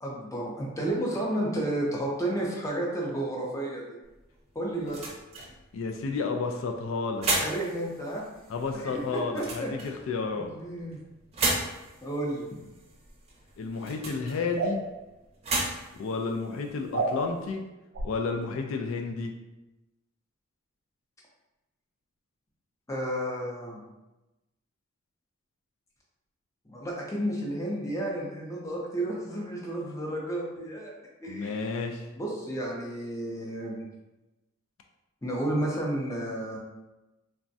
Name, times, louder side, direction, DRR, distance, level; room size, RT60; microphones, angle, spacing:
voice 1, 0.0-3.8 4.5-5.1 7.4-8.2 8.7-9.7 10.3-11.0 12.0-12.5 22.9-23.8 26.7-30.9 31.2-31.6 32.2-33.8 35.2-36.6, right 1 dB, 15° left, -3 dB, 0.5 m, -32 dB
sound 1, 4.0-17.5, right 2 dB, 30° right, 0.6 m, -36 dB
voice 2, 5.7-7.3 8.5-10.5 13.6-14.8 15.9-17.6 18.0-19.3 31.3-32.0, left 4 dB, 75° left, 3 dB, 0.3 m, -31 dB
sound 2, 14.5-14.8 16.9-17.2 17.9-18.1, right 3 dB, 85° right, 0.4 m, -28 dB
3.4 x 2.1 x 2.6 m, 1.0 s
head